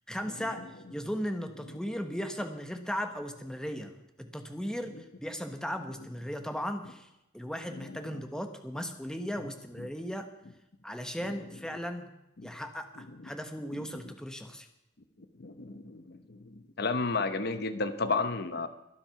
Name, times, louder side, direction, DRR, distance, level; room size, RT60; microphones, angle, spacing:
voice 1, 0.1-0.6 0.9-7.1 7.3-10.3 10.8-12.1 12.4-14.7, equal, 5° left, 6 dB, 1.2 m, -37 dB
voice 2, 15.4-16.4 16.8-18.7, left 3 dB, 55° left, 10 dB, 0.9 m, -31 dB
22.5 x 7.7 x 5.9 m, 0.88 s
head